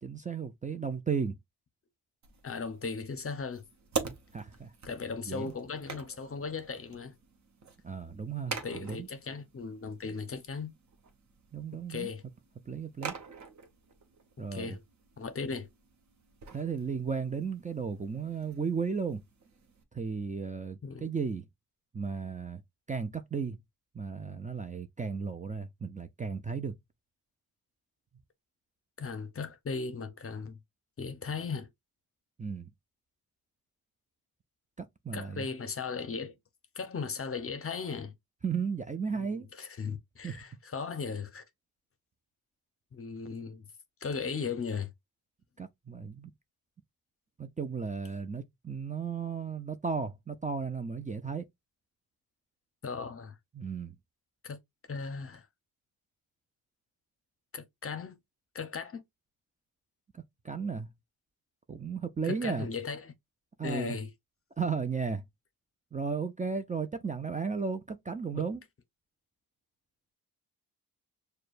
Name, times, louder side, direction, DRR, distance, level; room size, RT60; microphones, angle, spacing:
voice 1, 0.0-1.3 4.3-4.7 5.3-5.5 7.8-9.1 11.5-12.1 12.7-13.2 14.4-14.8 16.5-19.2 19.9-21.5 21.9-22.6 22.9-23.6 23.9-26.8 32.4-32.7 34.8-35.5 38.4-39.5 40.2-40.4 45.6-46.3 47.4-51.5 53.5-54.0 60.1-60.9 61.7-62.7 63.6-63.9 64.6-65.2 65.9-68.6, right 5 dB, 20° right, 0.4 m, -34 dB
sound 1, 2.2-19.8, right 5 dB, 50° right, 0.9 m, -45 dB
voice 2, 2.4-3.6 4.8-7.1 8.5-10.7 11.9-12.2 14.4-14.8 15.2-15.7 20.8-21.1 29.0-30.6 31.0-31.7 35.1-36.4 36.8-38.1 39.2-41.4 42.9-43.6 44.0-44.9 52.8-53.3 54.4-54.6 54.9-55.5 57.5-58.2 58.5-59.0 62.2-63.1 63.6-64.1 68.3-68.4, left 5 dB, 35° left, 0.7 m, -37 dB
6.5 x 2.2 x 2.5 m
cardioid pair, 100°, 37 cm